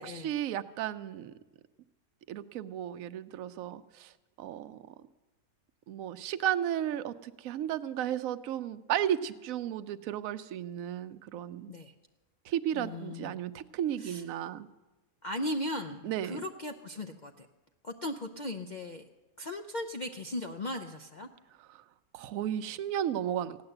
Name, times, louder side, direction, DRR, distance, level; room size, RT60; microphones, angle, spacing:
voice 1, 0.2-1.3 2.3-4.1 4.4-4.9 5.9-11.7 12.5-14.7 16.0-16.4 21.7-21.8 22.1-23.6, right 10 dB, 70° right, 11 dB, 1.0 m, -34 dB
voice 2, 12.7-13.3 14.0-14.2 15.2-17.5 17.8-19.1 19.4-21.3, left 1 dB, 50° left, 5 dB, 0.5 m, -37 dB
15.5 x 9.6 x 7.8 m, 1.1 s
omnidirectional pair, 1.6 m